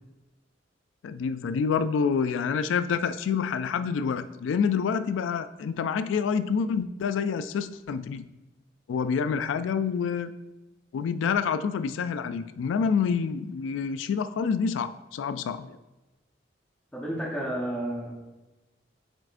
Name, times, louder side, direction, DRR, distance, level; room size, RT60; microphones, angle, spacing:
voice 1, 1.0-8.3 8.9-10.3 10.9-15.8, left 6 dB, 85° left, 12 dB, 0.3 m, -27 dB
voice 2, 16.9-18.1, right 1 dB, 10° left, -5 dB, 0.9 m, -31 dB
7.4 x 5.0 x 2.5 m, 1.1 s
head